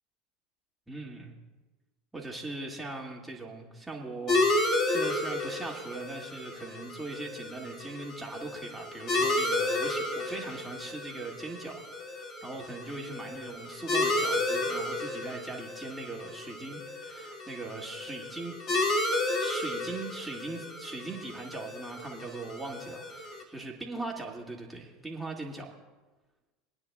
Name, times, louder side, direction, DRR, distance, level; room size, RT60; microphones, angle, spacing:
voice 1, 0.9-1.3 2.1-11.8 12.1-25.7, right 2 dB, 10° right, -2 dB, 2.4 m, -40 dB
sound 1, 4.3-23.4, left 2 dB, 45° left, 2.6 m, -32 dB
25.5 x 9.6 x 2.4 m, 1.2 s
hypercardioid pair, 85°, 0 cm